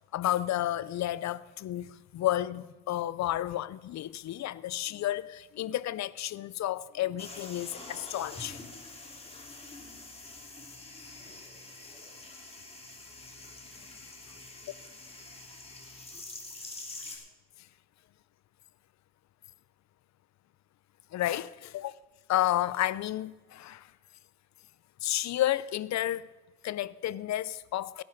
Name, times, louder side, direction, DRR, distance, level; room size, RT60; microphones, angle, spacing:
voice 1, 0.1-8.6 17.1-17.2 21.1-21.9 22.3-23.9 25.0-26.3 26.6-28.0, left 13 dB, 65° left, 0.6 m, -31 dB
sound 1, 7.2-17.2, left 2 dB, 20° left, 2.8 m, -46 dB
17.5 x 10.5 x 4.1 m
cardioid pair, 90°, 30 cm